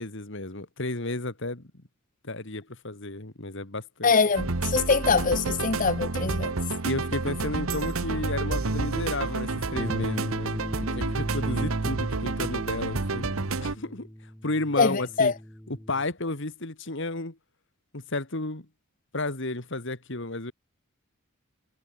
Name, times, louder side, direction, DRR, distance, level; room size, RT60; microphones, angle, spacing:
voice 1, 0.0-1.8 2.2-4.1 6.9-10.5 10.8-13.3 13.6-14.1 14.4-15.3 15.9-17.4 17.9-18.7 19.1-20.5, left 2 dB, 60° left, 2.4 m, -32 dB
voice 2, 4.0-6.5 14.8-15.3, left 5 dB, 40° left, 0.7 m, -23 dB
sound 1, 4.4-13.8, right 3 dB, 75° right, 1.2 m, -29 dB
sound 2, 9.8-16.0, equal, 5° left, 1.6 m, -39 dB
head